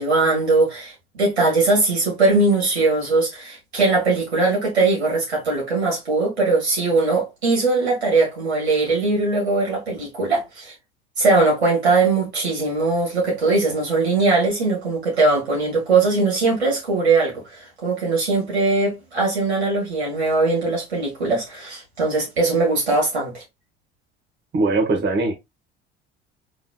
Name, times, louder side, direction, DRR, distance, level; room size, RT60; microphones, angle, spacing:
voice 1, 0.0-10.7 11.2-23.4, right 3 dB, 85° right, 2.2 m, -20 dB
voice 2, 24.5-25.3, right 3 dB, 35° right, 1.6 m, -20 dB
4.1 x 3.8 x 2.3 m
figure-of-eight pair, 60°, 31 cm